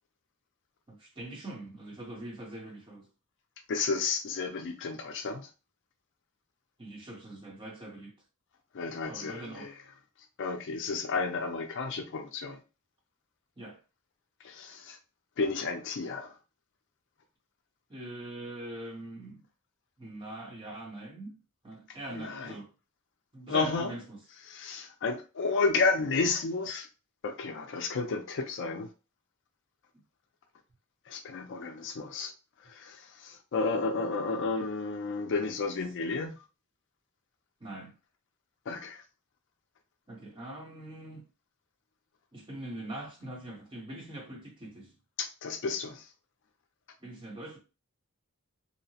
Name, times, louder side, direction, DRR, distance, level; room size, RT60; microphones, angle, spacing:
voice 1, 0.9-3.1 6.8-8.1 9.1-9.7 13.6-13.8 17.9-19.4 20.0-21.3 21.6-22.7 23.3-24.2 37.6-37.9 40.1-41.3 42.3-44.9 47.0-47.6, right 1 dB, 25° right, 0.9 m, -42 dB
voice 2, 3.7-5.5 8.7-9.7 10.4-12.6 14.4-15.0 15.4-16.4 22.1-22.5 23.5-23.9 24.5-26.9 27.2-28.9 31.1-32.3 32.6-36.4 38.7-39.0 45.2-46.1, left 4 dB, 55° left, 0.4 m, -32 dB
2.8 x 2.0 x 2.7 m
head